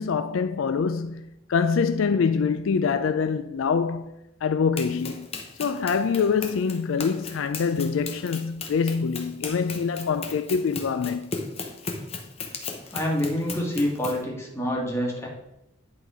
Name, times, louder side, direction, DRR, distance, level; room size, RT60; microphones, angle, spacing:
voice 1, 0.0-4.1 4.4-5.3 5.6-11.3, left 5 dB, 70° left, 0.4 m, -25 dB
Run, 4.8-14.3, left 4 dB, 30° left, 0.9 m, -36 dB
voice 2, 12.9-15.3, equal, 15° left, 1.8 m, -27 dB
10.5 x 4.1 x 4.9 m
head